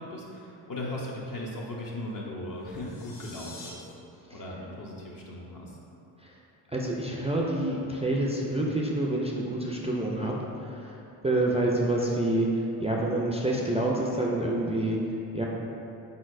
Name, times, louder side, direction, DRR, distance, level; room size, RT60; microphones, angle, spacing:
voice 1, 0.0-3.8 4.3-5.8, left 1 dB, 40° left, -4 dB, 0.8 m, -37 dB
sound 1, 2.6-3.7, left 3 dB, 80° left, 0.9 m, -47 dB
voice 2, 6.7-10.9 11.2-12.5 12.8-15.0 15.3-15.5, right 1 dB, 15° right, -3 dB, 0.4 m, -27 dB
4.2 x 3.9 x 2.5 m, 2.8 s
supercardioid pair, 50°, 50 cm